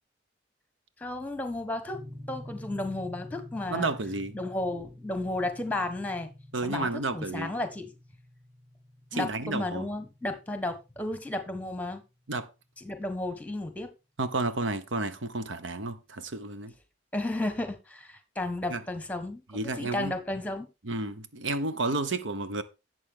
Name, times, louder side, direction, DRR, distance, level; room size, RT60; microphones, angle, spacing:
voice 1, 1.0-3.9 4.3-6.3 6.6-7.9 9.1-12.0 12.8-13.9 17.1-20.7, left 2 dB, 10° left, 1.4 m, -33 dB
sound 1, 1.9-12.0, left 1 dB, 65° right, 5.1 m, -48 dB
voice 2, 3.7-4.4 6.5-7.5 9.1-9.8 12.3-12.5 14.2-16.7 18.7-18.8 19.5-20.1 20.8-22.6, right 2 dB, 85° right, 1.0 m, -31 dB
11.5 x 7.8 x 3.7 m
head